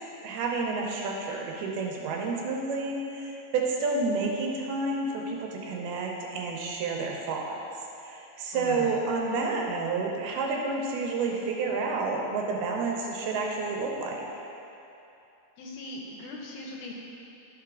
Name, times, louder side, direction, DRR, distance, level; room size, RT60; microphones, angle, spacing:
voice 1, 0.2-7.6 8.0-14.3, right 3 dB, 85° right, 0 dB, 2.5 m, -30 dB
voice 2, 8.5-9.0 15.6-16.9, left 2 dB, 80° left, -2 dB, 2.5 m, -39 dB
11.5 x 4.8 x 3.6 m, 2.8 s
omnidirectional pair, 4.6 m